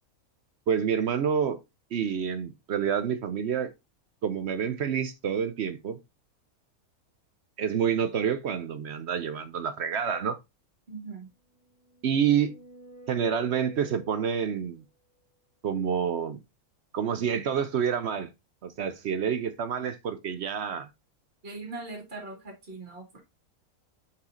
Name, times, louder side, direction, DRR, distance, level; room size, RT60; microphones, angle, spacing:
voice 1, 0.7-1.6 1.9-3.7 4.2-6.0 7.6-10.4 12.0-12.5 13.1-14.8 15.6-16.4 16.9-18.3 18.6-20.9, right 7 dB, 60° right, 0.7 m, -28 dB
voice 2, 10.9-11.3 21.4-23.2, right 3 dB, 40° right, 2.4 m, -40 dB
sound 1, 11.6-14.7, right 1 dB, 60° left, 1.8 m, -50 dB
5.8 x 4.8 x 3.8 m
omnidirectional pair, 1.6 m